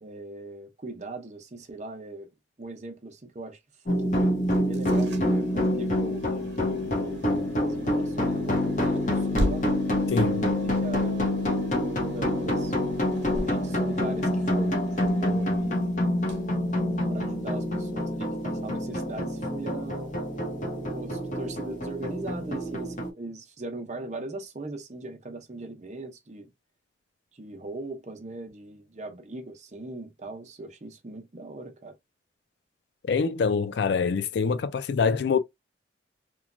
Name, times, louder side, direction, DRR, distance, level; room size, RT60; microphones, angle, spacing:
voice 1, 0.0-2.3 2.6-3.6 4.0-4.1 4.6-6.2 6.8-7.3 7.6-9.6 10.5-11.3 11.9-12.7 13.3-15.8 16.7-20.1 20.9-26.5 27.3-32.0, right 2 dB, 35° right, 0.6 m, -40 dB
sound 1, 3.9-23.1, left 1 dB, 40° left, 0.8 m, -27 dB
sound 2, 4.4-17.4, equal, 70° right, 0.9 m, -40 dB
voice 2, 10.1-10.5 33.1-35.4, left 5 dB, 65° left, 0.3 m, -25 dB
3.0 x 2.2 x 2.5 m
head